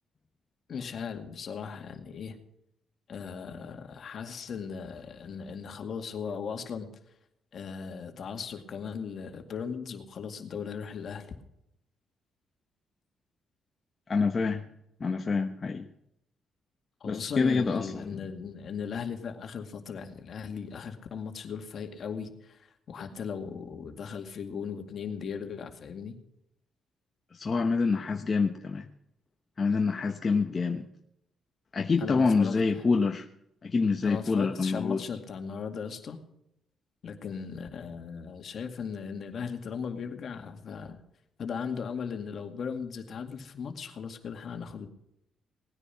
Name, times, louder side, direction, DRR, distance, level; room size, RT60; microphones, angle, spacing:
voice 1, 0.7-2.4 3.1-6.9 7.5-11.3 17.0-26.2 32.0-32.8 34.0-36.2 37.0-41.0 41.4-44.9, left 6 dB, 55° left, 2.2 m, -37 dB
voice 2, 14.1-14.6 15.0-15.9 17.0-18.2 27.3-28.9 29.6-30.9 31.7-33.3 33.6-35.0, left 4 dB, 35° left, 1.0 m, -26 dB
18.5 x 9.9 x 5.8 m
cardioid pair, 90°, 0 cm